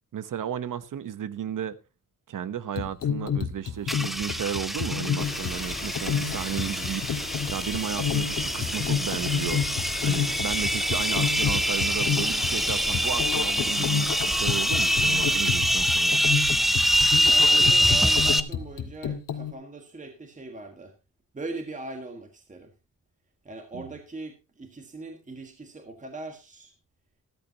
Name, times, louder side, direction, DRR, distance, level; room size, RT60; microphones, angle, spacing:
voice 1, 0.1-1.8 2.3-9.6 10.0-16.2 23.7-23.9, right 9 dB, 70° right, 1.0 m, -34 dB
sound 1, 2.8-19.5, left 7 dB, 80° left, 1.8 m, -30 dB
sound 2, 3.9-18.4, equal, ahead, 0.7 m, -25 dB
sound 3, 5.2-15.4, left 4 dB, 30° left, 1.9 m, -39 dB
voice 2, 17.1-20.9 21.3-22.7 23.4-26.7, right 2 dB, 25° right, 1.6 m, -40 dB
14.0 x 13.5 x 2.8 m
wide cardioid pair, 145°, 33 cm